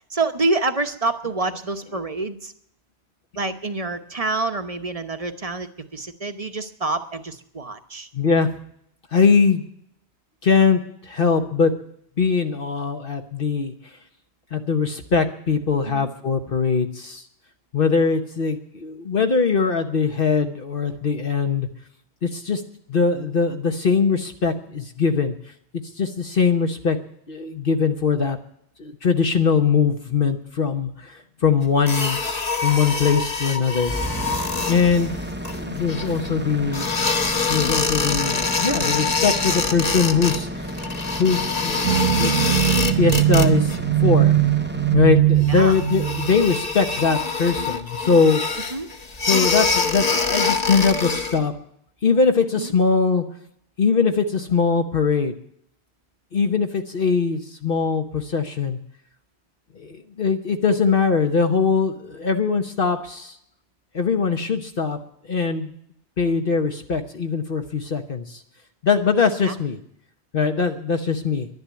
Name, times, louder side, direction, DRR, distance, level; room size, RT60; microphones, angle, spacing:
voice 1, 0.1-2.5 3.4-8.1 15.9-16.1 45.5-45.8 48.7-48.9 52.6-52.7 69.4-69.5, right 3 dB, 35° right, 9 dB, 1.0 m, -27 dB
voice 2, 8.1-8.5 9.1-9.6 10.4-11.7 12.2-13.7 14.5-17.2 17.7-21.7 22.2-22.6 22.9-25.3 26.0-27.0 27.3-28.4 28.8-32.2 32.6-33.9 34.7-35.2 35.5-37.1 37.5-40.7 41.2-44.4 44.9-48.4 49.2-51.5 52.0-53.2 53.8-55.3 56.3-58.8 59.8-63.4 63.9-65.0 65.3-65.8 66.2-68.4 68.8-69.8 70.3-71.5, left 5 dB, 55° left, 5 dB, 1.2 m, -21 dB
sound 1, 31.9-36.3 36.7-40.4 40.6-43.8 44.1-44.5 44.9-45.0 45.4-51.4, left 4 dB, 40° left, 1.3 m, -25 dB
sound 2, 33.8-47.8, equal, 10° right, 0.8 m, -33 dB
sound 3, 41.8-46.4, right 14 dB, 85° right, 1.1 m, -20 dB
11.5 x 11.0 x 9.3 m, 0.69 s
omnidirectional pair, 1.1 m